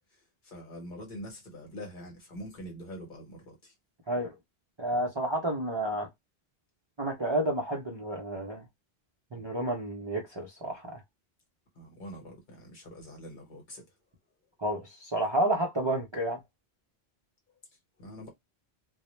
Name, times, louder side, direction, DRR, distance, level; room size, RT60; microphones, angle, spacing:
voice 1, 0.4-3.7 11.7-13.8 18.0-18.3, equal, 50° left, 1.1 m, -44 dB
voice 2, 4.8-6.1 7.0-8.7 9.3-11.0 14.6-16.4, right 1 dB, 35° right, 0.5 m, -30 dB
2.1 x 2.1 x 2.9 m
omnidirectional pair, 1.1 m